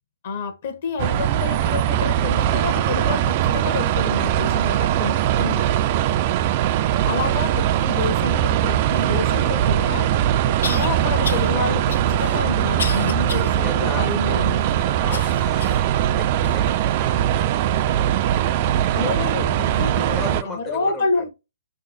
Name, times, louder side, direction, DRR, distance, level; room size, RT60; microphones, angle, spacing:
voice 1, 0.2-5.6 7.1-10.1 10.5-14.7 18.9-21.3, left 4 dB, 50° left, 1.0 m, -28 dB
sound 1, 1.0-20.4, right 11 dB, 35° right, 0.3 m, -21 dB
voice 2, 6.2-6.9 7.5-7.7 13.6-18.7 20.0-21.2, left 2 dB, 10° left, 0.5 m, -38 dB
sound 2, 9.6-9.7 10.6-10.9 11.2-11.5 11.9-13.5 14.0-14.1 15.1-15.9 16.4-16.5 17.3-17.4, left 5 dB, 70° left, 0.6 m, -31 dB
4.9 x 2.1 x 2.5 m
hypercardioid pair, 140°, 0 cm